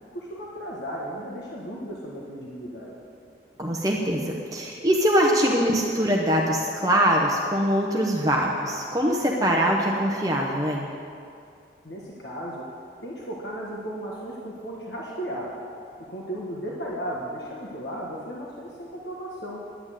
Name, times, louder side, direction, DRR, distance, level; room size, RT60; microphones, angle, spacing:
voice 1, 0.1-2.9 11.8-12.6 13.0-15.5 16.1-19.6, equal, 60° left, -4 dB, 1.5 m, -35 dB
voice 2, 3.6-10.9, equal, 20° right, -1 dB, 0.9 m, -23 dB
11.0 x 8.8 x 7.5 m, 2.4 s
head